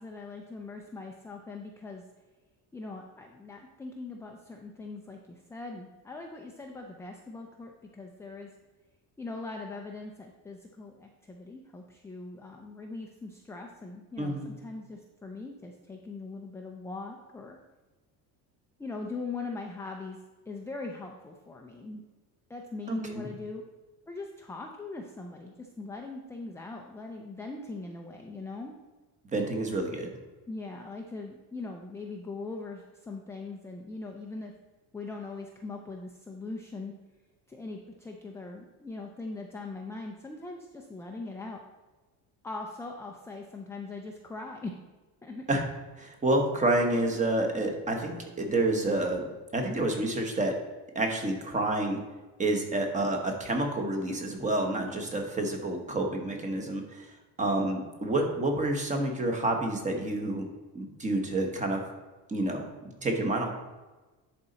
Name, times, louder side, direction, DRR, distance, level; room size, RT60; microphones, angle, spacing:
voice 1, 0.0-2.0 2.7-8.5 9.2-17.6 18.8-20.2 20.5-22.0 22.5-23.6 24.1-28.7 30.5-34.5 34.9-36.9 37.5-41.6 42.4-44.7 45.2-45.4, left 3 dB, 5° left, 1 dB, 0.3 m, -41 dB
voice 2, 14.2-14.5 22.9-23.3 29.3-30.1 45.5-45.6 46.0-50.6 50.9-52.0 52.4-57.1 57.4-60.5 60.7-61.8 62.3-63.5, right 2 dB, 20° right, 3 dB, 1.0 m, -29 dB
10.5 x 4.2 x 3.9 m, 1.2 s
cardioid pair, 155°, 41 cm